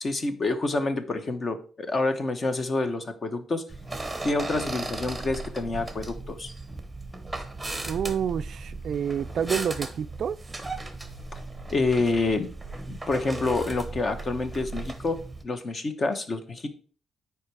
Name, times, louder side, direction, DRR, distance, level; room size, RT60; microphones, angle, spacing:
voice 1, 0.0-3.6 4.2-6.5 11.7-12.5 12.9-15.2 15.4-16.7, left 3 dB, 35° left, 1.0 m, -27 dB
sound 1, 3.7-15.4, right 2 dB, 10° right, 1.1 m, -36 dB
voice 2, 7.9-10.4, right 8 dB, 55° right, 0.3 m, -28 dB
9.8 x 4.7 x 4.7 m
cardioid pair, 150°, 0 cm